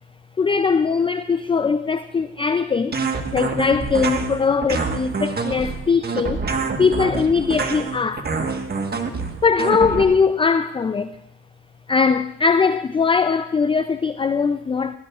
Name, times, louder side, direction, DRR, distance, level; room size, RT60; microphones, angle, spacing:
voice 1, 0.4-3.0 3.3-6.4 6.8-8.4 9.4-11.1 11.9-15.0, left 5 dB, 20° left, 0.4 m, -20 dB
sound 1, 2.9-10.0, right 4 dB, 30° right, 1.4 m, -26 dB
19.0 x 15.0 x 2.4 m
cardioid pair, 90°, 30 cm